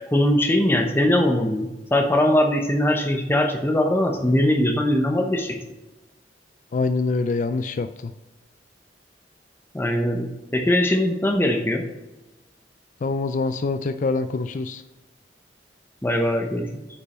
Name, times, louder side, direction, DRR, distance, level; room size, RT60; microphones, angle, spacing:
voice 1, 0.0-5.6 9.7-11.8 16.0-16.7, left 1 dB, 15° left, 2 dB, 0.8 m, -21 dB
voice 2, 6.7-7.9 13.0-14.8, left 3 dB, 45° left, 9 dB, 0.4 m, -24 dB
8.6 x 5.3 x 4.3 m, 1.1 s
head